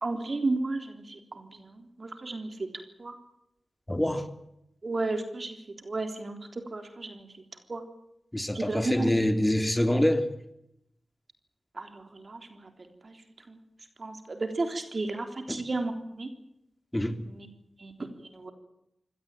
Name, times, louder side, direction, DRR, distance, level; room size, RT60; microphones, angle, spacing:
voice 1, 0.0-2.7 3.0-3.1 4.8-5.6 5.8-7.4 7.7-7.8 8.5-9.1 11.7-13.2 13.5-13.6 14.0-16.3 17.2-17.5 17.8-18.5, right 2 dB, 55° right, 3.6 m, -33 dB
voice 2, 3.9-4.2 8.3-10.3 15.5-15.6 16.9-17.2, left 1 dB, 15° left, 3.3 m, -25 dB
24.5 x 17.5 x 9.1 m
cardioid pair, 45°, 0 cm